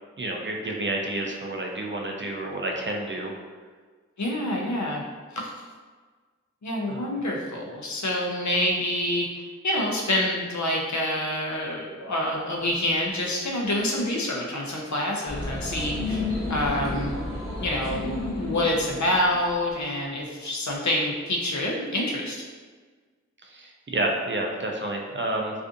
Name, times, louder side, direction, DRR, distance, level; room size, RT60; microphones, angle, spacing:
voice 1, 0.2-3.4 6.9-7.1 23.4-25.6, right 1 dB, 40° right, 1 dB, 0.4 m, -30 dB
voice 2, 4.2-5.0 5.3-5.5 6.6-9.3 9.6-16.2 16.5-17.1 17.6-22.4, left 1 dB, 70° left, -1 dB, 0.5 m, -27 dB
sound 1, 15.3-19.7, left 2 dB, 10° right, 1.2 m, -31 dB
2.5 x 2.4 x 2.5 m, 1.5 s
wide cardioid pair, 40°, 29 cm